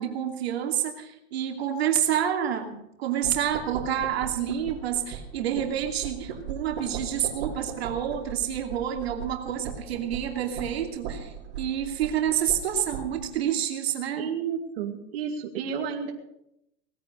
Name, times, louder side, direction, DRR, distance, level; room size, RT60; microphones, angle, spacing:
voice 1, 0.0-14.3, right 10 dB, 85° right, 3 dB, 2.8 m, -28 dB
sound 1, 3.2-13.3, right 7 dB, 45° right, 5.2 m, -39 dB
voice 2, 14.2-16.1, right 7 dB, 70° right, 2 dB, 2.5 m, -31 dB
19.0 x 9.6 x 6.8 m, 0.80 s
supercardioid pair, 155°, 31 cm